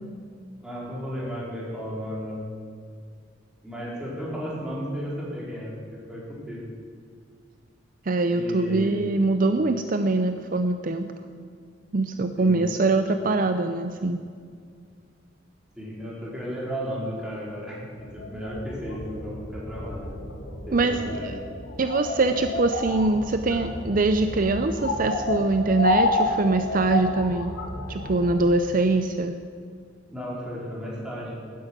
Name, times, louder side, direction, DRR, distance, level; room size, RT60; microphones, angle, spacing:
voice 1, 0.6-2.4 3.6-5.7 6.1-6.7 8.3-9.1 12.4-12.6 15.8-20.1 20.7-21.3 30.1-31.5, equal, 5° right, -6 dB, 4.5 m, -34 dB
voice 2, 8.1-11.1 11.9-14.2 20.7-21.0 21.2-21.3 21.8-27.5 27.9-29.3, right 2 dB, 45° right, 8 dB, 0.6 m, -23 dB
sound 1, 18.0-28.4, left 1 dB, 75° left, 2.2 m, -30 dB
12.5 x 10.5 x 8.2 m, 2.2 s
head